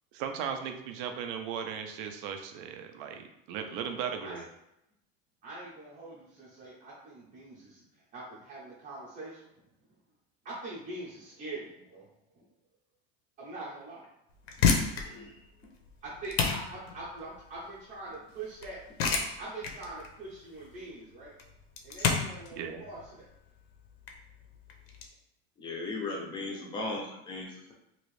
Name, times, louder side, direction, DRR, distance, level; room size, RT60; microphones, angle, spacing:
voice 1, 0.1-4.5 22.6-22.9, right 7 dB, 60° right, 5 dB, 0.5 m, -37 dB
voice 2, 5.4-9.6 10.4-12.1 13.4-14.0 16.0-18.8 19.4-21.3 21.8-23.3, right 2 dB, 25° right, -9 dB, 0.7 m, -43 dB
sound 1, 14.3-25.1, left 6 dB, 85° left, 0.7 m, -32 dB
voice 3, 15.0-15.4 25.6-27.7, left 2 dB, 15° left, -1 dB, 0.5 m, -37 dB
2.9 x 2.5 x 3.1 m, 0.83 s
supercardioid pair, 170°, 30 cm